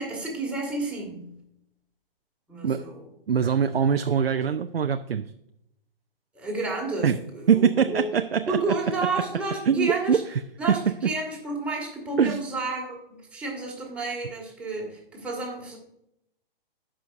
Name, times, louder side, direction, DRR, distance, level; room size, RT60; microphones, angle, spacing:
voice 1, 0.0-1.4 2.5-3.0 6.3-8.1 8.5-10.2 10.6-15.8, right 3 dB, 5° right, -3 dB, 2.2 m, -31 dB
voice 2, 3.3-5.3 7.0-7.2 7.5-8.7 9.7-10.4 12.2-12.4, right 7 dB, 90° right, 8 dB, 0.5 m, -23 dB
15.0 x 5.6 x 2.6 m, 0.79 s
figure-of-eight pair, 125°, 29 cm